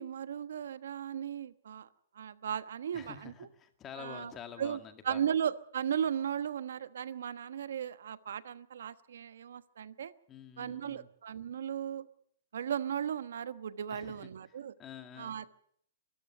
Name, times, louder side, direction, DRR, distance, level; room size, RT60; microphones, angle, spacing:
voice 1, 0.0-1.9 2.1-3.3 4.0-4.3 4.6-4.8 5.0-10.1 10.6-12.1 12.5-14.7 15.2-15.5, right 9 dB, 80° right, 14 dB, 1.2 m, -36 dB
voice 2, 2.9-5.2 10.3-11.1 13.9-15.4, left 8 dB, 20° left, 7 dB, 2.1 m, -48 dB
24.0 x 14.0 x 7.9 m, 0.65 s
hypercardioid pair, 155°, 0 cm